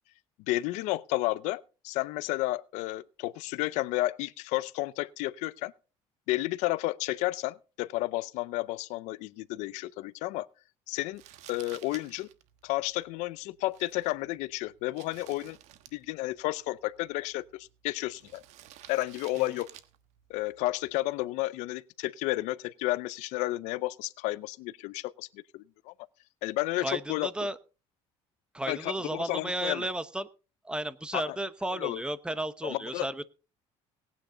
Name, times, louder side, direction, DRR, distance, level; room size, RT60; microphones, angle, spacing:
voice 1, 0.5-5.7 6.3-10.5 10.9-11.2 11.5-12.3 12.6-15.6 15.9-18.4 18.9-19.7 20.3-25.9 26.4-27.3 28.7-29.9 31.1-31.4 31.7-32.0 32.6-33.1, left 18 dB, 85° left, 0.6 m, -32 dB
Crumpling crinkling, 11.1-21.3, right 12 dB, 75° right, 1.3 m, -55 dB
voice 2, 26.8-27.6 28.5-30.3 30.6-33.2, right 1 dB, 10° right, 0.9 m, -33 dB
18.5 x 9.3 x 3.9 m
cardioid pair, 130°, 12 cm